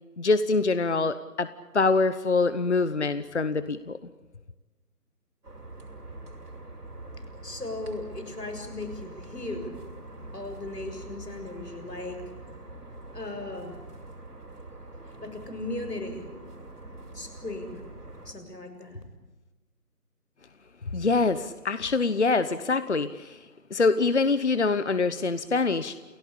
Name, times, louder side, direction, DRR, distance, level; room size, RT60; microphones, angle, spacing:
voice 1, 0.2-4.0 20.9-23.4 23.7-26.0, left 3 dB, 45° left, 13 dB, 1.0 m, -25 dB
sound 1, 5.4-18.3, right 2 dB, 70° right, 6.4 m, -44 dB
voice 2, 7.4-9.8 10.3-12.2 13.1-13.8 15.0-16.3 17.1-17.8 18.3-19.0, left 2 dB, 90° left, 7 dB, 7.1 m, -37 dB
29.5 x 17.5 x 8.7 m, 1.2 s
figure-of-eight pair, 165°, 47 cm